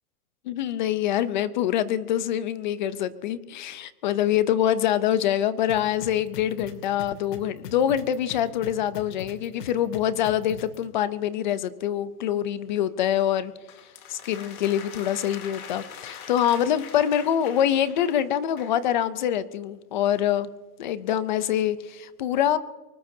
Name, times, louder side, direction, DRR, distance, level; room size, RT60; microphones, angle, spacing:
voice 1, 0.5-13.5 14.1-20.5 20.8-22.6, left 10 dB, 30° left, 15 dB, 0.6 m, -25 dB
sound 1, 5.7-10.8, left 6 dB, 85° left, 2.6 m, -40 dB
sound 2, 13.7-18.9, left 7 dB, 65° left, 3.1 m, -43 dB
24.0 x 20.0 x 2.7 m, 1.3 s
supercardioid pair, 170°, 45 cm